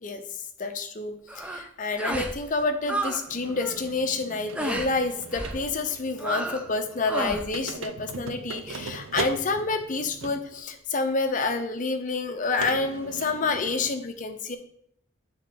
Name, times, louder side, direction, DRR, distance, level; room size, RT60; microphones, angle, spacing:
voice 1, 0.6-14.6, left 3 dB, 40° left, 7 dB, 0.6 m, -28 dB
sound 1, 1.3-1.6 2.0-2.4 2.6-3.2 3.5-3.8 4.5-4.9 5.3-5.6 6.2-6.7 7.0-7.5, right 1 dB, 5° right, 0.4 m, -31 dB
sound 2, 3.3-10.6 11.4-11.5 12.6-13.9, right 4 dB, 75° right, 0.5 m, -39 dB
7.8 x 3.7 x 3.9 m, 0.68 s
head